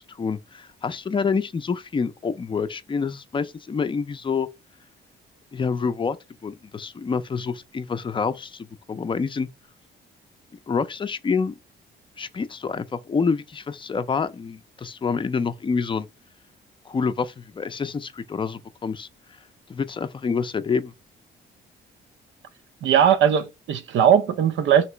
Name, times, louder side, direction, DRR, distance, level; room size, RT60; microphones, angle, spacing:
voice 1, 0.0-4.5 5.5-6.2 6.4-9.5 10.7-11.5 12.2-16.1 16.9-19.1 19.7-20.9, left 5 dB, 25° left, 0.5 m, -27 dB
voice 2, 22.8-24.9, right 8 dB, 70° right, 0.7 m, -19 dB
2.9 x 2.9 x 4.4 m
cardioid pair, 90°, 20 cm